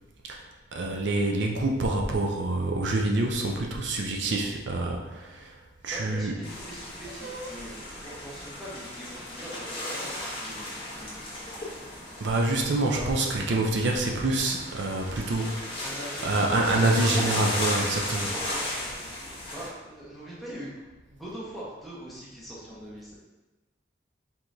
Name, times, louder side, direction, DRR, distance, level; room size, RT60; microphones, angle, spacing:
voice 1, 0.7-5.6 5.8-6.3 7.2-7.5 12.2-15.8 16.2-18.3, right 2 dB, 75° right, 1 dB, 0.6 m, -26 dB
voice 2, 5.9-11.9 12.9-13.1 15.8-16.9 18.3-19.1 19.4-20.7 21.1-23.2, equal, ahead, -8 dB, 1.1 m, -42 dB
sound 1, 6.4-19.7, left 1 dB, 30° left, 1.0 m, -35 dB
4.7 x 3.7 x 2.7 m, 1.1 s
head